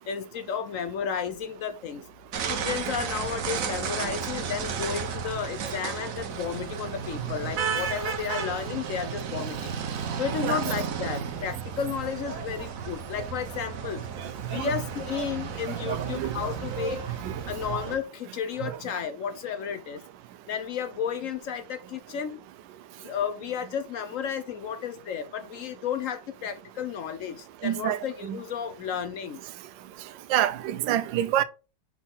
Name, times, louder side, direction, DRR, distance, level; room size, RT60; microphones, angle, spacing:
voice 1, 0.0-2.0 2.5-9.7 10.2-14.0 14.5-17.0 17.5-20.0 20.5-22.4 23.0-29.4, left 7 dB, 65° left, 0.8 m, -33 dB
sound 1, 2.3-18.0, right 7 dB, 55° right, 1.1 m, -33 dB
voice 2, 14.2-14.7 15.8-16.3 17.2-17.3 18.6-18.7 27.6-28.4 30.3-31.4, right 12 dB, 85° right, 1.3 m, -27 dB
5.8 x 4.3 x 3.8 m
omnidirectional pair, 1.9 m